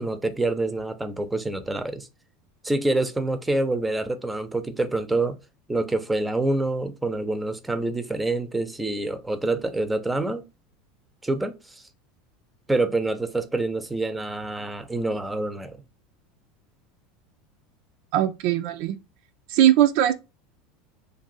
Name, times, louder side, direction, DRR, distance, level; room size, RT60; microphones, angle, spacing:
voice 1, 0.0-2.1 2.6-5.4 5.7-10.4 11.2-11.8 12.7-15.8, right 2 dB, 10° right, 0.6 m, -26 dB
voice 2, 18.1-19.0 19.5-20.1, right 12 dB, 65° right, 0.4 m, -20 dB
2.6 x 2.6 x 3.9 m
hypercardioid pair, 90°, 0 cm